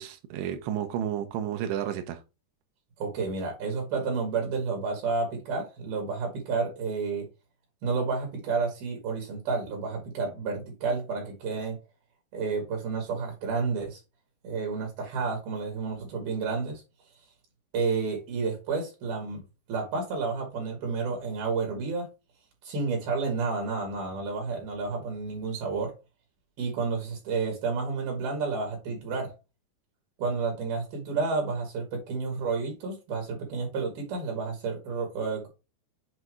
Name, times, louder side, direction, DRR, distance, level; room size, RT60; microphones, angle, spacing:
voice 1, 0.0-2.2, right 10 dB, 80° right, 2.8 m, -31 dB
voice 2, 3.0-7.3 7.8-11.8 12.3-14.0 14.4-16.8 17.7-19.4 19.7-22.1 22.7-25.9 26.6-29.3 30.2-35.5, right 4 dB, 65° right, 3.5 m, -30 dB
8.0 x 2.7 x 4.6 m
omnidirectional pair, 4.8 m